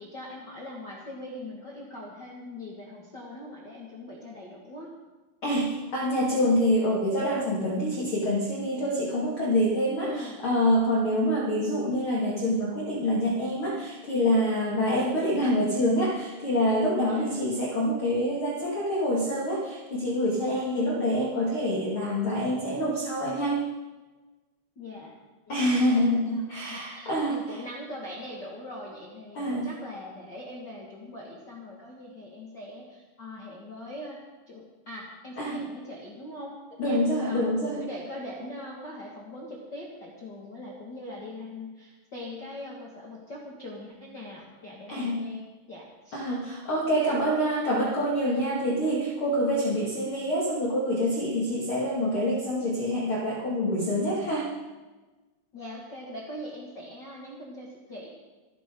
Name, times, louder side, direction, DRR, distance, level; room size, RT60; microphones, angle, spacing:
voice 1, 0.0-4.9 10.0-10.4 17.0-17.4 24.7-25.2 25.5-26.0 26.3-34.2 34.5-36.5 36.8-46.2 53.8-54.2 55.5-58.1, left 1 dB, 80° left, -4 dB, 0.9 m, -42 dB
voice 2, 5.4-23.6 25.5-27.6 29.3-29.7 35.4-35.6 36.8-37.8 44.9-45.2 46.1-54.5, equal, 40° left, -4 dB, 2.0 m, -26 dB
29.0 x 10.0 x 3.9 m, 1.2 s
omnidirectional pair, 5.6 m